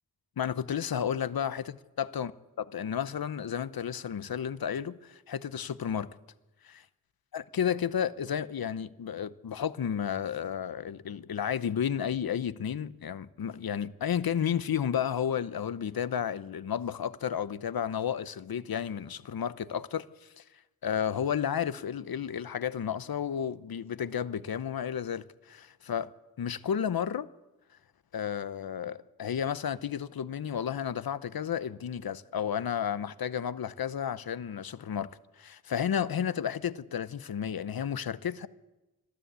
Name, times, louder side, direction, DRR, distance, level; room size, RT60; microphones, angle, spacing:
voice 1, 0.4-2.3 2.6-6.1 6.6-6.8 7.3-20.4 20.8-26.1 26.4-27.3 28.1-35.1 35.4-38.5, left 8 dB, 70° left, 0.8 m, -32 dB
25.5 x 13.0 x 8.1 m
wide cardioid pair, 75°, 37 cm